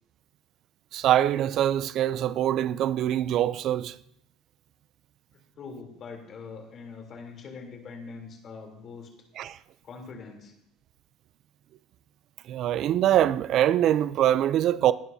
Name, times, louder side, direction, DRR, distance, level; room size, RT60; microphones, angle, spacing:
voice 1, 0.9-4.0 9.4-9.6 12.5-14.9, right 12 dB, 55° right, 0.5 m, -23 dB
voice 2, 5.6-9.1 9.8-10.5, left 4 dB, 45° left, 3.3 m, -43 dB
21.5 x 11.5 x 2.8 m
supercardioid pair, 90°, 0 cm